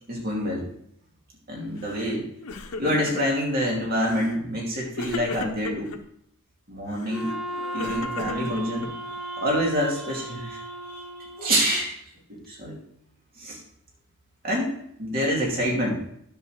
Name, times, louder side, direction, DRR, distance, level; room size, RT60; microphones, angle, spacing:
voice 1, 0.1-0.7 1.5-2.3 2.8-5.9 6.7-7.3 7.7-12.0 12.3-12.8 13.4-13.6 14.4-16.0, equal, 40° right, -3 dB, 2.5 m, -27 dB
Crying sobbing, 1.8-2.1 2.4-3.4 3.9-4.4 5.0-6.0 6.9-9.1, left 3 dB, 70° left, 0.9 m, -36 dB
Wind instrument woodwind instrument, 7.1-11.8, right 1 dB, ahead, 0.8 m, -36 dB
10.0 x 4.2 x 6.4 m, 0.70 s
head